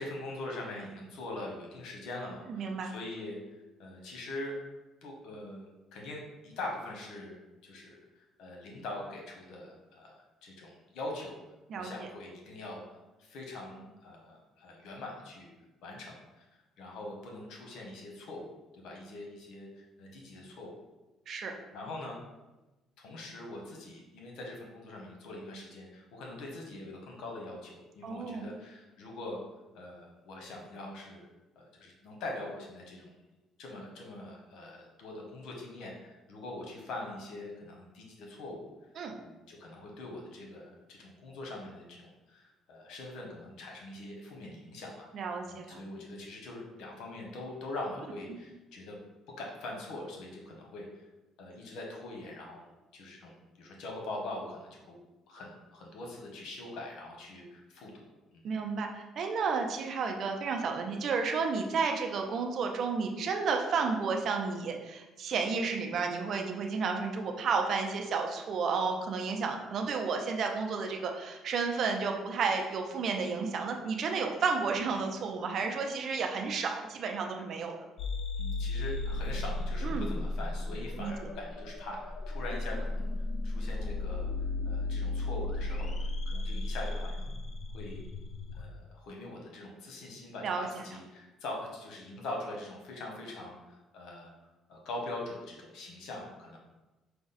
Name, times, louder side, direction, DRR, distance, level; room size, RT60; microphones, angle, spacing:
voice 1, 0.0-3.4 3.8-4.5 5.0-5.7 5.9-7.4 7.6-11.4 11.7-12.8 13.2-15.5 15.8-18.5 18.7-20.7 21.7-22.2 23.0-29.4 29.7-31.3 31.5-33.1 33.6-38.7 39.2-45.1 45.4-49.0 49.3-51.1 51.4-52.7 52.9-55.0 55.3-58.4 78.4-83.1 83.4-84.3 84.6-87.3 87.7-88.1 88.6-94.3 94.7-96.6, left 2 dB, 75° left, 0 dB, 1.1 m, -43 dB
voice 2, 2.5-2.9 11.7-12.1 21.3-21.5 28.0-28.5 39.0-39.2 45.1-45.8 58.4-58.9 59.2-77.8 79.8-80.1 81.0-81.1 90.4-90.7, right 5 dB, 60° right, 3 dB, 0.6 m, -32 dB
sound 1, 78.0-88.6, left 2 dB, 50° left, 0.6 m, -34 dB
5.0 x 2.3 x 4.0 m, 1.1 s
supercardioid pair, 85°, 0 cm